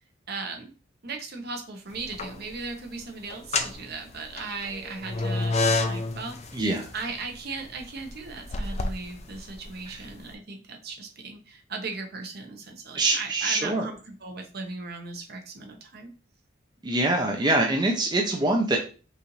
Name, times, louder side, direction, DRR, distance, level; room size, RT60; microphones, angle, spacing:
voice 1, 0.3-0.7 1.0-6.5 6.9-16.1, right 4 dB, 50° right, 3 dB, 0.9 m, -37 dB
sound 1, 1.9-2.6 3.3-10.2, left 3 dB, 35° left, 0.4 m, -30 dB
voice 2, 6.5-6.9 9.9-10.0 12.9-13.9 16.8-18.8, right 2 dB, 20° right, 1 dB, 0.5 m, -24 dB
5.5 x 2.5 x 3.1 m, 0.36 s
head